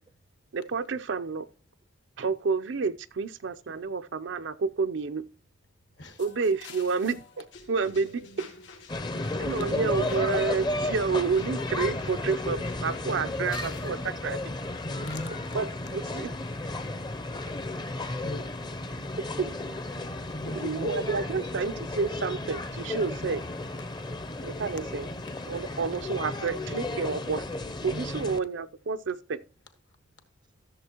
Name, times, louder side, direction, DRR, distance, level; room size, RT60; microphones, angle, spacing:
voice 1, 0.5-1.5 2.2-5.3 6.2-8.5 9.4-14.4 15.5-16.3 19.2-19.5 20.5-23.4 24.4-25.1 25.5-27.4 27.8-29.4, right 4 dB, 80° right, 0.5 m, -30 dB
sound 1, 6.2-13.9, left 4 dB, 85° left, 2.0 m, -49 dB
sound 2, 8.9-28.4, left 2 dB, 25° left, 0.6 m, -33 dB
voice 2, 9.0-9.5 13.0-13.2 14.8-15.4 18.1-18.4 20.3-21.4 23.0-23.3 27.9-28.4, left 1 dB, 70° left, 1.4 m, -39 dB
voice 3, 19.4-20.3 24.0-24.2 24.7-25.6, right 2 dB, 25° right, 0.4 m, -50 dB
14.0 x 7.0 x 2.9 m
head